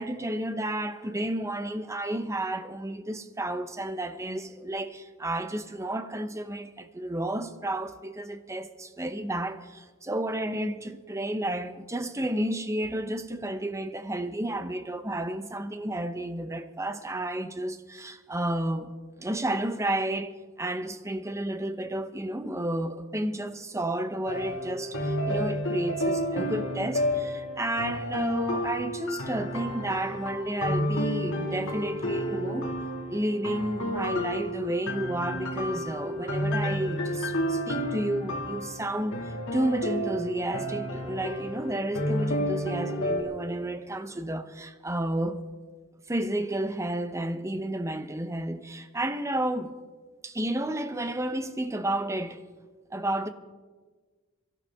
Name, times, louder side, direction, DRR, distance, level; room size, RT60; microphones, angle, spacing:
voice 1, 0.0-18.9 19.2-20.3 20.6-32.7 33.1-39.2 39.5-45.4 46.1-49.7 50.2-52.4 52.9-53.3, right 1 dB, 15° right, 0.7 m, -31 dB
sound 1, 24.3-43.2, equal, 65° left, 2.1 m, -31 dB
23.5 x 13.0 x 3.5 m
head